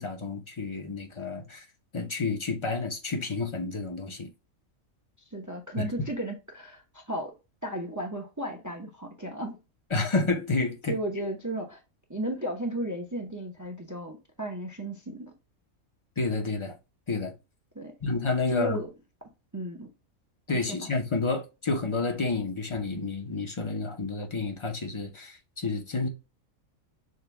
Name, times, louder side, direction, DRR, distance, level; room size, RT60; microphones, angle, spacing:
voice 1, 0.0-1.6 1.9-4.3 5.8-5.9 9.9-11.0 16.2-16.8 17.1-17.3 18.0-18.8 20.5-26.1, left 3 dB, 30° left, 0.6 m, -30 dB
voice 2, 5.3-7.3 7.6-9.6 10.9-11.8 12.1-15.3 17.7-18.0 18.5-18.9 19.5-19.9 20.5-20.9, right 1 dB, 20° right, 0.6 m, -34 dB
6.5 x 2.2 x 3.3 m
omnidirectional pair, 1.4 m